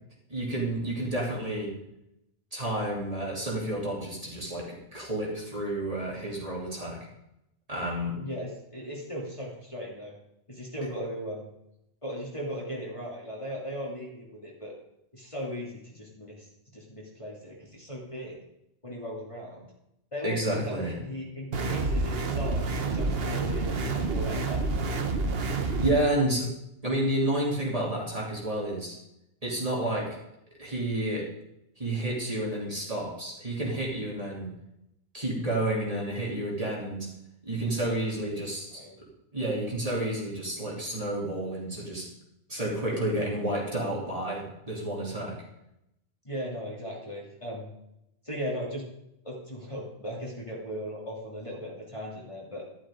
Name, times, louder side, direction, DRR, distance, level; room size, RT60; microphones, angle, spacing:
voice 1, 0.3-1.7 2.5-7.0 7.7-8.1 20.2-21.0 25.5-26.5 26.8-29.0 29.4-30.1 30.6-31.3 31.8-34.5 35.1-37.1 37.4-38.8 39.3-42.1 42.5-45.4, right 1 dB, 35° right, -4 dB, 3.3 m, -30 dB
voice 2, 8.2-10.1 10.5-11.5 12.0-14.7 15.1-18.4 18.8-19.7 20.1-24.6 37.6-38.0 38.3-38.4 38.7-39.0 46.2-47.7 48.2-48.8 49.2-52.6, equal, 30° left, -3 dB, 3.1 m, -38 dB
sound 1, 21.5-25.9, right 3 dB, 65° right, 1.3 m, -28 dB
12.5 x 12.0 x 3.8 m, 0.83 s
omnidirectional pair, 1.1 m